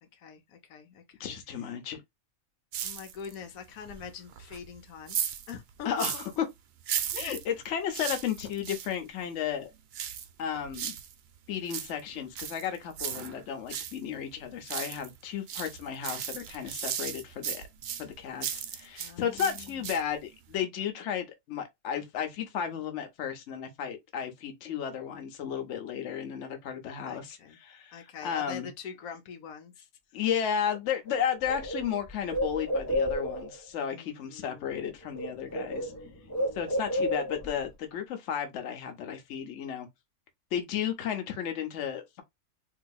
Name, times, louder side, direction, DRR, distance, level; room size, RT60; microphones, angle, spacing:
voice 1, 0.0-1.7 2.8-6.2 19.0-19.9 27.1-27.6 27.9-29.9 33.9-34.8 35.6-36.9, left 7 dB, 90° left, 1.2 m, -45 dB
voice 2, 1.2-2.0 5.8-6.2 7.1-9.7 10.4-11.0 11.5-17.6 18.0-28.7 30.1-35.9 36.5-39.9 40.5-42.2, left 8 dB, 60° left, 1.0 m, -33 dB
sound 1, 2.7-3.5 3.8-6.4 6.8-8.9 9.9-11.1 11.5-14.0 14.3-15.2 15.5-19.1 19.4-20.2 20.5-20.6, right 9 dB, 65° right, 0.6 m, -36 dB
Bird, 30.7-30.8 31.1-33.6 34.7-34.9 35.1-37.6, equal, 20° left, 0.4 m, -32 dB
3.8 x 2.7 x 2.3 m
omnidirectional pair, 1.5 m